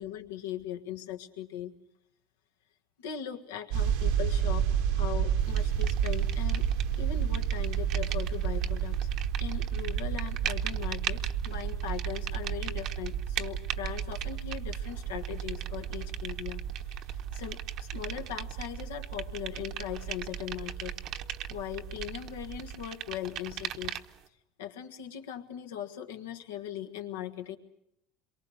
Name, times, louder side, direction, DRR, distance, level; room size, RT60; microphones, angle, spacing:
voice 1, 0.0-1.7 3.0-6.7 7.0-9.1 9.4-16.6 16.9-21.0 21.5-24.0 24.6-27.6, left 10 dB, 90° left, 5 dB, 1.6 m, -39 dB
sound 1, 3.7-22.9, right 8 dB, 80° right, 1.4 m, -32 dB
sound 2, 5.6-7.0 7.2-24.2, right 10 dB, 55° right, 1.0 m, -40 dB
27.0 x 23.5 x 6.4 m, 0.79 s
supercardioid pair, 105°, 0 cm